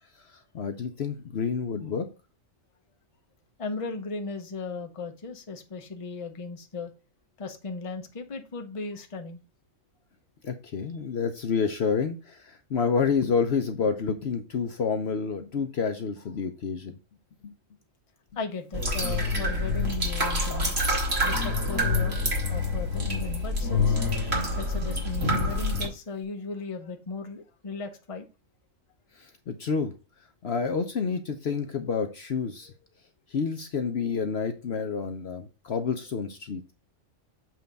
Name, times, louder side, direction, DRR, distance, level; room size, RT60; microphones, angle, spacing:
voice 1, 0.3-2.1 10.4-16.9 17.4-17.5 29.2-29.9 30.4-32.7 33.3-36.7, left 5 dB, 55° left, 6 dB, 0.9 m, -29 dB
voice 2, 3.6-6.9 7.4-9.4 18.4-20.7 21.2-22.2 22.5-24.0 24.6-28.3, left 4 dB, 30° left, 5 dB, 0.9 m, -36 dB
sound 1, 18.7-25.9, left 2 dB, 50° right, 2.3 m, -26 dB
7.6 x 3.4 x 5.2 m, 0.32 s
omnidirectional pair, 1.4 m